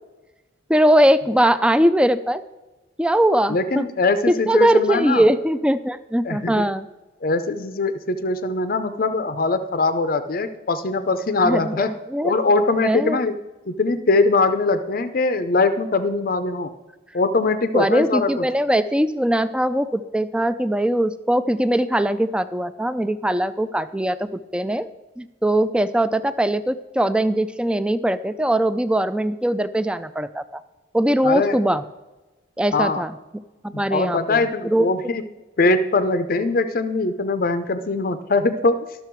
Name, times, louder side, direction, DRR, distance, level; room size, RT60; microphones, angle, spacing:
voice 1, 0.7-2.4 3.0-3.9 4.3-6.9 11.4-12.3 12.8-13.2 17.7-24.9 25.2-30.6 30.9-31.8 32.6-33.2 33.6-34.9, right 1 dB, 5° right, 13 dB, 0.3 m, -21 dB
voice 2, 3.5-5.2 6.2-6.7 7.2-11.9 12.2-13.4 13.7-16.7 17.1-18.4 31.2-31.6 32.7-33.0 33.7-35.2 35.6-38.8, left 3 dB, 50° left, 10 dB, 0.5 m, -21 dB
12.5 x 6.6 x 4.5 m, 1.1 s
head